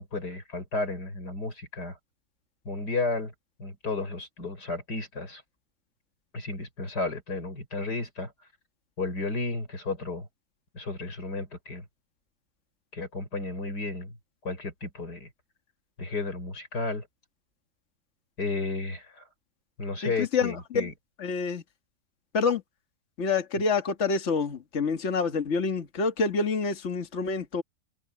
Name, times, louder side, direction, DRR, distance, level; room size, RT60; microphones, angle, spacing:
voice 1, 0.0-2.0 2.7-3.3 3.6-5.4 6.3-8.3 9.0-10.3 10.7-11.9 12.9-14.2 14.4-15.3 16.0-17.1 18.4-19.3 19.8-20.9, left 3 dB, 65° left, 6.9 m, -33 dB
voice 2, 20.0-20.9 21.2-21.6 22.3-22.6 23.2-27.6, left 4 dB, 40° left, 1.9 m, -27 dB
omnidirectional pair, 1.9 m